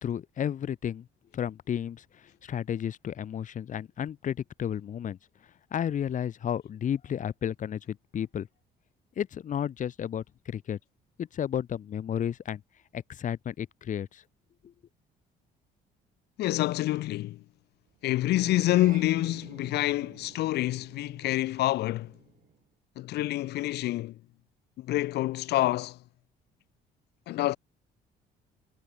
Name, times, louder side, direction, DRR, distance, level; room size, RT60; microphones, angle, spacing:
voice 1, 0.0-1.1 1.3-5.2 5.7-8.5 9.2-10.8 11.2-12.6 12.9-14.2 14.6-14.7, left 9 dB, 50° left, 2.7 m, -32 dB
voice 2, 16.4-17.4 18.0-22.1 23.0-24.2 24.8-26.0 27.3-27.6, left 16 dB, 75° left, 2.8 m, -27 dB
sound 1, 18.1-22.6, right 9 dB, 50° right, 7.4 m, -50 dB
cardioid pair, 110°, 17 cm